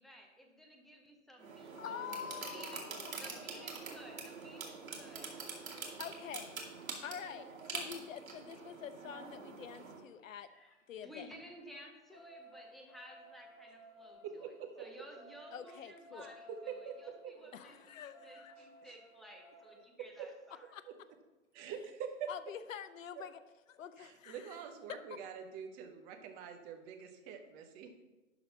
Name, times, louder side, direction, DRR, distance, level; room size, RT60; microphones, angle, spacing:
voice 1, 0.0-2.1 2.5-2.9 3.1-5.3 10.4-20.7, equal, ahead, 1 dB, 0.6 m, -55 dB
sound 1, 1.4-10.0, right 4 dB, 80° right, 2.4 m, -45 dB
voice 2, 1.8-3.2 3.5-3.7 6.0-6.6 7.0-10.5 10.9-11.3 15.5-16.3 17.5-18.6 20.7-20.8 22.3-23.4 23.7-24.7, left 8 dB, 70° left, 11 dB, 0.8 m, -46 dB
sound 2, 5.5-5.6 7.3-10.8 11.1-19.8 21.5-21.6 21.9-22.0 22.3-22.4, right 1 dB, 20° left, 1.9 m, -59 dB
voice 3, 14.2-14.9 16.2-17.0 17.2-17.5 18.6-18.9 20.2-20.3 21.6-22.1 24.0-27.9, right 7 dB, 20° right, 5 dB, 0.9 m, -46 dB
11.5 x 4.1 x 5.6 m, 1.1 s
hypercardioid pair, 135°, 41 cm